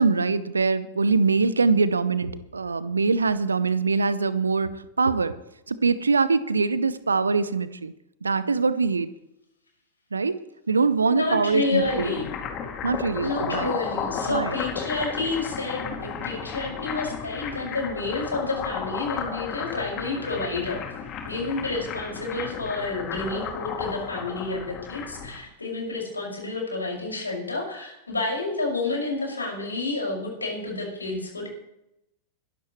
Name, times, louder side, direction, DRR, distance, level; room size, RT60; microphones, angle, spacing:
voice 1, 0.0-4.7 5.0-5.3 5.7-7.9 8.2-9.1 10.1-10.4 10.7-12.1 12.8-13.7 14.3-14.5, right 4 dB, 75° right, 16 dB, 0.8 m, -23 dB
voice 2, 11.0-12.3 13.2-20.8 21.2-31.5, left 3 dB, 80° left, -1 dB, 5.9 m, -30 dB
sound 1, 11.5-25.4, left 7 dB, 35° left, 2.5 m, -34 dB
21.5 x 12.0 x 3.2 m, 0.85 s
figure-of-eight pair, 90°, 0 cm